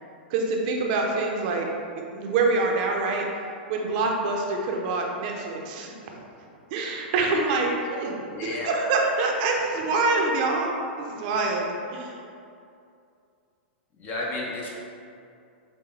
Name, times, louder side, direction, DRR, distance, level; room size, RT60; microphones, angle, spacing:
voice 1, 0.3-1.7 2.1-3.3 3.7-5.9 6.7-10.7 11.0-11.6 11.9-12.1, right 3 dB, 55° right, 0 dB, 0.6 m, -25 dB
voice 2, 8.3-8.9 14.0-14.7, left 2 dB, 35° left, -3 dB, 0.9 m, -32 dB
5.9 x 2.2 x 3.2 m, 2.5 s
hypercardioid pair, 120°, 6 cm